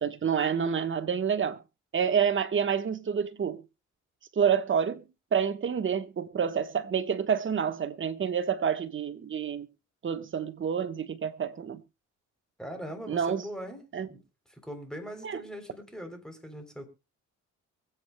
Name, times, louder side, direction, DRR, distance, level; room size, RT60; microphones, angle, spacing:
voice 1, 0.0-1.6 1.9-3.6 4.4-5.0 5.3-9.7 10.0-11.8 13.1-13.4 13.9-14.1 15.2-15.4, right 7 dB, 40° right, 1.2 m, -28 dB
voice 2, 12.6-14.2 14.5-16.8, equal, ahead, 3.3 m, -41 dB
23.5 x 8.5 x 2.2 m
cardioid pair, 90°, 30 cm